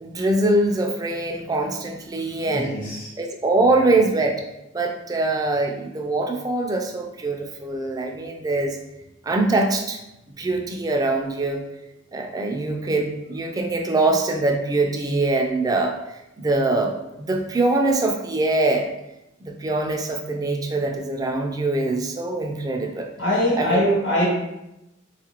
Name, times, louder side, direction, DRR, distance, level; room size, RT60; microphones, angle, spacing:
voice 1, 0.0-2.8 3.2-4.4 4.7-8.8 9.3-10.0 10.4-11.6 12.1-15.9 16.4-18.9 19.4-23.1 23.6-23.8, right 2 dB, 20° right, 2 dB, 0.3 m, -23 dB
voice 2, 2.5-3.1 23.2-24.3, left 1 dB, 70° left, -4 dB, 1.1 m, -22 dB
3.5 x 2.4 x 2.8 m, 0.90 s
head